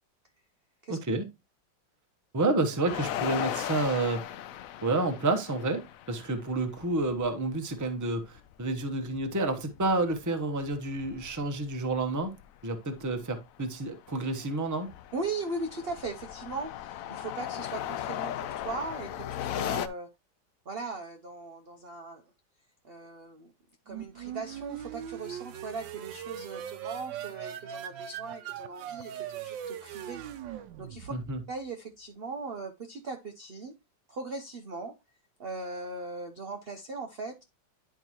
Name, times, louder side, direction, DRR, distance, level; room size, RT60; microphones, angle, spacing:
voice 1, 0.9-1.2 2.3-4.2 4.8-12.3 12.6-14.9 31.1-31.4, right 2 dB, 15° right, 0.6 m, -29 dB
sound 1, 2.9-7.3 7.5-7.6 7.9-10.3 10.6-12.4 13.0-13.2 13.6-19.9, left 11 dB, 75° left, 0.7 m, -37 dB
voice 2, 15.1-20.1 20.7-22.2 22.8-23.5 23.9-30.2 30.8-31.1 31.5-33.7 34.1-34.9 35.4-37.4, right 3 dB, 55° right, 0.6 m, -39 dB
sound 2, 23.9-31.5, right 10 dB, 85° right, 1.4 m, -40 dB
10.5 x 4.6 x 2.9 m
omnidirectional pair, 2.0 m